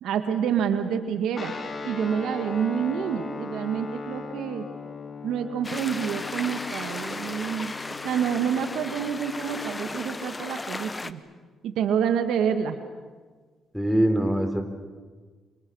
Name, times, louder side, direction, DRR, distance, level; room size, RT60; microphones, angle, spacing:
voice 1, 0.0-1.5 1.8-4.6 5.2-7.7 8.0-11.2 11.6-12.8, right 8 dB, 80° right, 7 dB, 2.1 m, -27 dB
Guitar, 1.3-9.9, left 4 dB, 40° left, 2.8 m, -39 dB
sound 1, 5.6-11.1, left 3 dB, 20° left, 1.1 m, -35 dB
voice 2, 13.7-14.6, right 1 dB, ahead, 6 dB, 3.9 m, -23 dB
28.5 x 26.5 x 6.5 m, 1.4 s
cardioid pair, 90°, 0 cm